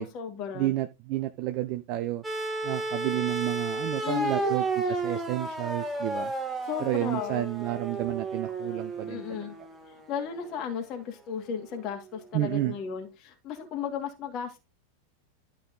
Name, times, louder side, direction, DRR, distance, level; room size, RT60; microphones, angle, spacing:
voice 1, 0.0-0.7 4.0-4.6 6.7-7.5 9.1-9.6 10.1-14.6, left 8 dB, 35° left, 2.5 m, -35 dB
voice 2, 0.5-2.2 2.6-6.3 6.8-9.5 12.3-12.7, right 15 dB, 40° right, 0.8 m, -31 dB
sound 1, 2.2-10.4 11.6-11.7, right 3 dB, 10° right, 2.1 m, -32 dB
12.5 x 4.9 x 4.0 m
figure-of-eight pair, 90°, 0 cm